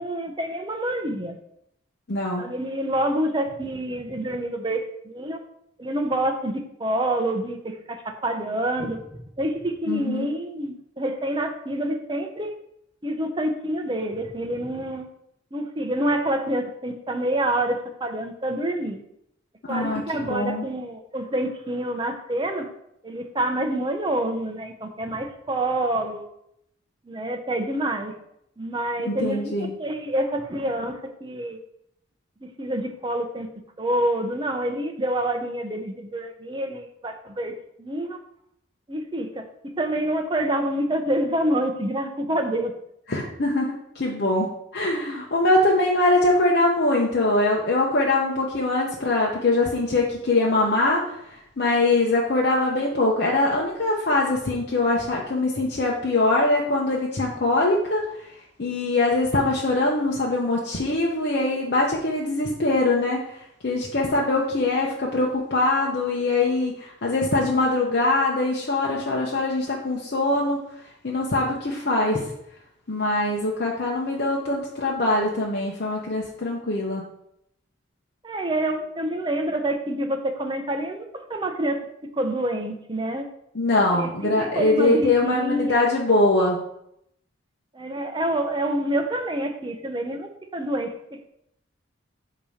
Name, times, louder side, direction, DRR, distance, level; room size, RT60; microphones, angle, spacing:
voice 1, 0.0-1.4 2.4-5.4 5.8-9.0 9.4-12.5 13.0-15.1 15.5-19.0 19.7-22.7 23.0-26.3 27.1-28.1 28.6-31.6 32.4-33.5 33.8-37.5 37.8-38.2 38.9-42.7 78.2-83.3 83.9-85.9 87.7-91.3, right 1 dB, 25° right, 5 dB, 0.7 m, -27 dB
voice 2, 2.1-2.5 9.9-10.3 19.7-20.6 29.0-29.7 43.1-43.7 43.9-44.5 44.7-58.0 58.6-70.6 71.0-72.2 72.9-77.0 83.5-86.6, left 2 dB, 50° left, -3 dB, 0.8 m, -23 dB
8.3 x 2.9 x 5.0 m, 0.78 s
head